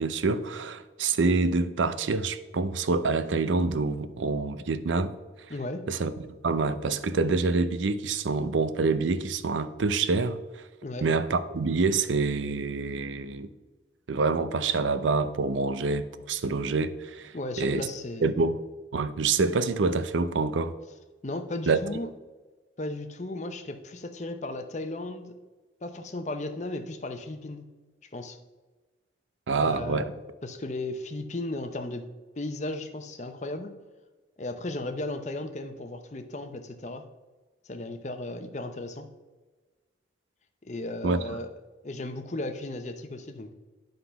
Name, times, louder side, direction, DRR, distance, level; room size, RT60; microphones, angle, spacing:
voice 1, 0.0-5.1 5.9-10.6 11.0-13.5 14.1-17.9 18.2-18.6 18.9-20.7 21.7-21.8 29.5-30.0 41.0-41.4, right 4 dB, 85° right, 12 dB, 0.5 m, -26 dB
voice 2, 5.5-5.9 10.8-11.1 17.3-18.3 21.2-22.1 22.8-25.4 25.8-27.7 28.1-28.4 29.5-30.1 30.4-32.1 32.4-33.7 34.4-37.1 37.6-39.1 40.6-41.5 41.8-43.5, left 2 dB, 40° left, 7 dB, 0.7 m, -35 dB
9.9 x 3.9 x 5.6 m, 1.2 s
head